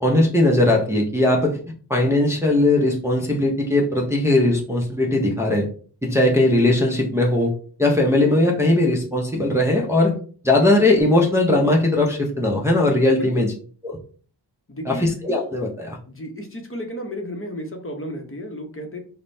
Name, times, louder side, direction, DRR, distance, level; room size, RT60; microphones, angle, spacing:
voice 1, 0.0-1.6 1.9-5.7 6.0-7.5 7.8-10.2 10.4-13.5 13.8-14.0 14.9-16.0, left 2 dB, 5° right, -1 dB, 0.6 m, -19 dB
voice 2, 14.7-15.1 16.1-19.0, equal, 30° left, 3 dB, 0.8 m, -33 dB
5.0 x 2.1 x 2.6 m, 0.41 s
wide cardioid pair, 105°, 43 cm